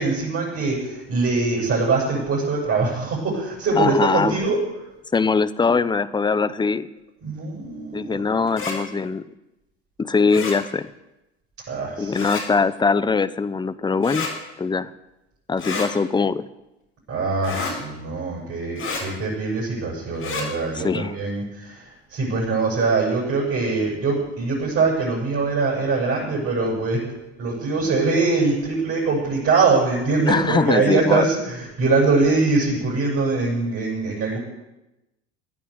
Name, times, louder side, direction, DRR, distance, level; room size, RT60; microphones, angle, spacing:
voice 1, 0.0-4.6 7.2-8.2 11.7-12.3 17.1-27.0 27.4-34.4, right 3 dB, 40° right, -4 dB, 7.5 m, -23 dB
voice 2, 3.8-4.4 5.1-6.9 7.9-9.2 10.0-10.9 12.0-14.3 14.6-14.9 15.5-16.4 20.7-21.1 30.2-31.2, left 4 dB, 15° left, 15 dB, 0.8 m, -21 dB
sound 1, 8.5-8.8 10.3-10.6 12.1-12.4 14.0-14.3 15.6-15.9 17.4-17.7 18.8-19.0 20.1-20.5, left 4 dB, 40° left, 7.4 m, -29 dB
16.5 x 9.3 x 8.1 m, 0.96 s
hypercardioid pair, 80°, 34 cm